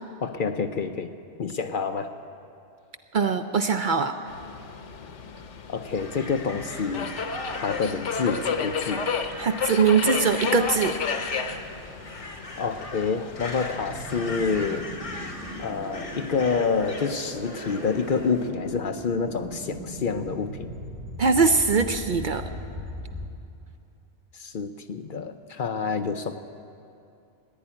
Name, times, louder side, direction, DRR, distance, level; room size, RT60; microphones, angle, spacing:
voice 1, 0.2-1.1 1.4-2.1 5.7-7.1 7.5-9.0 12.6-14.9 15.6-20.7 24.3-26.4, left 5 dB, 55° left, 8 dB, 0.7 m, -28 dB
voice 2, 3.1-4.2 9.4-10.9 21.2-22.5, right 5 dB, 55° right, 8 dB, 0.6 m, -22 dB
Subway metro underground, 4.3-14.8, left 5 dB, 85° left, 1.2 m, -33 dB
Crow, 5.8-18.5, left 2 dB, 30° left, 1.2 m, -40 dB
sound 1, 13.9-23.3, equal, 10° right, 1.7 m, -39 dB
15.0 x 10.0 x 9.7 m, 2.6 s
omnidirectional pair, 1.2 m